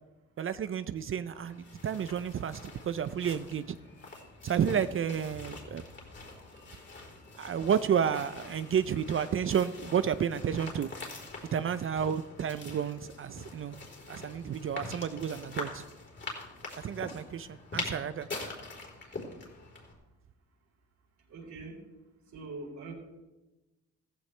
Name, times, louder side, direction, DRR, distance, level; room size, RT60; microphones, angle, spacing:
voice 1, 0.4-3.8 4.4-5.8 7.4-10.9 11.5-13.8 14.1-15.8 16.8-18.3, right 8 dB, 45° right, 13 dB, 0.6 m, -31 dB
sound 1, 1.3-19.9, left 3 dB, 35° left, 4.0 m, -44 dB
voice 2, 21.3-21.8 22.3-22.9, right 3 dB, 65° right, 0 dB, 4.2 m, -43 dB
15.0 x 15.0 x 3.3 m, 1.1 s
cardioid pair, 90°, 30 cm